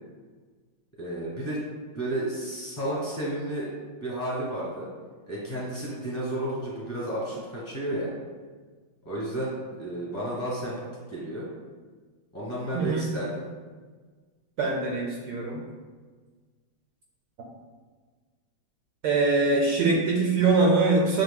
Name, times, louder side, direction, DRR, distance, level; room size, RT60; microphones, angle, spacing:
voice 1, 1.0-1.6 1.9-3.7 4.0-4.9 5.3-8.1 9.0-10.7 11.1-11.5 12.3-13.4, right 1 dB, 25° left, -7 dB, 1.4 m, -32 dB
voice 2, 12.7-13.0 14.6-15.6 19.0-21.2, right 3 dB, 70° right, -1 dB, 1.0 m, -23 dB
7.2 x 3.2 x 2.2 m, 1.4 s
omnidirectional pair, 2.2 m